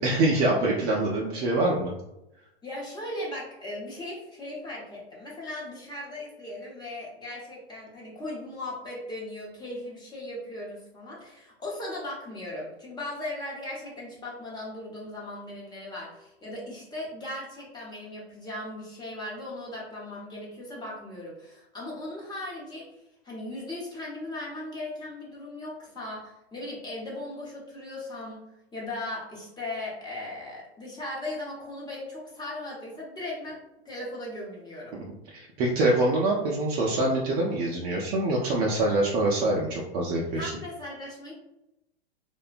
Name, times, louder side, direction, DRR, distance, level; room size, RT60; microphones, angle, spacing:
voice 1, 0.0-1.9 35.3-40.5, right 2 dB, 30° right, -3 dB, 0.4 m, -25 dB
voice 2, 2.6-28.4 28.7-33.6 33.8-35.0 40.3-41.3, left 1 dB, 15° left, -4 dB, 0.8 m, -38 dB
2.7 x 2.2 x 2.4 m, 0.87 s
hypercardioid pair, 115°, 33 cm